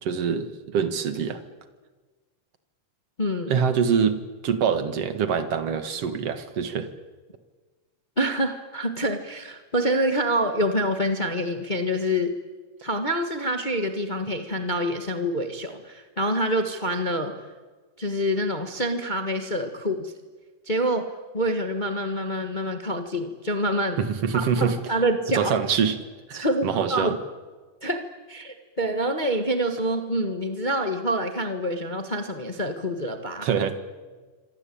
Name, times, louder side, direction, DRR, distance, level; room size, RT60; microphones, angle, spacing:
voice 1, 0.0-1.4 3.5-4.2 4.4-6.9 24.0-25.0 25.3-26.0 26.3-27.2 33.4-33.8, right 7 dB, 55° right, 10 dB, 2.4 m, -25 dB
voice 2, 3.2-3.6 8.2-12.3 12.8-17.3 18.0-20.1 20.6-21.1 21.3-24.0 24.3-25.5 26.3-27.2 27.8-33.5, equal, 35° left, 6 dB, 0.7 m, -26 dB
27.5 x 25.0 x 8.7 m, 1.4 s
omnidirectional pair, 3.8 m